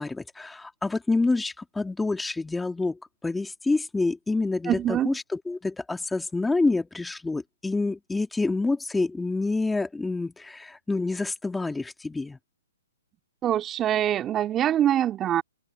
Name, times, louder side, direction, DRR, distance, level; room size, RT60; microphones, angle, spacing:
voice 1, 0.0-12.4, left 3 dB, 5° left, 3.0 m, -27 dB
voice 2, 4.7-5.1 13.4-15.4, right 11 dB, 20° right, 2.7 m, -24 dB
open air
hypercardioid pair, 130°, 0 cm